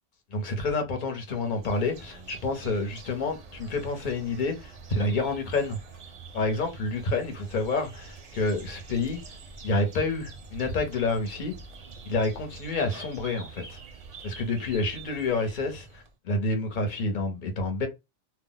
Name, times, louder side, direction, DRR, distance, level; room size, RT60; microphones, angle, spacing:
voice 1, 0.3-5.8 6.3-9.2 9.6-11.5 12.0-13.8 14.2-17.9, left 3 dB, 50° left, 0.8 m, -28 dB
sound 1, 1.3-16.1, right 4 dB, 45° right, 0.5 m, -46 dB
2.4 x 2.0 x 3.8 m
omnidirectional pair, 1.1 m